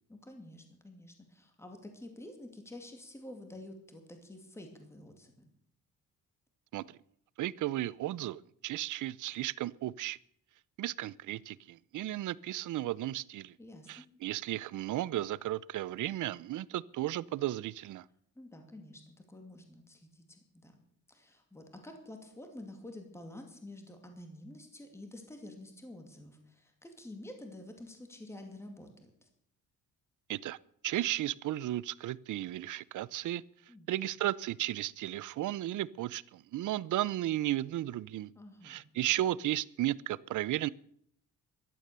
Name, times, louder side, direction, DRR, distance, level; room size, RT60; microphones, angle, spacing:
voice 1, 0.1-5.5 13.6-14.0 18.4-20.8 21.1-29.3 33.7-33.9 38.3-38.8, left 1 dB, 10° left, 2.4 m, -49 dB
voice 2, 7.4-10.2 10.8-13.5 13.9-18.0 30.3-30.6 30.8-33.4 33.9-38.3 38.6-40.7, right 14 dB, 65° right, 0.6 m, -34 dB
16.5 x 12.5 x 6.8 m
cardioid pair, 160°, 32 cm